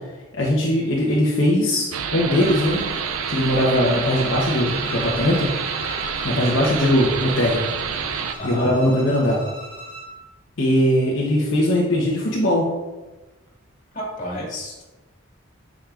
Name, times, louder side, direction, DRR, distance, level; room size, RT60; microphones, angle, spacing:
voice 1, 0.3-2.9 3.3-5.9 6.2-7.6 8.4-9.4 10.6-12.7, left 1 dB, 65° left, -5 dB, 1.0 m, -20 dB
sound 1, 1.9-8.3, right 7 dB, 80° right, 0.5 m, -28 dB
Bowed string instrument, 2.4-10.1, equal, 25° right, 1.7 m, -38 dB
voice 2, 13.9-14.9, equal, 35° left, -4 dB, 2.0 m, -30 dB
9.0 x 5.2 x 2.5 m, 1.2 s
head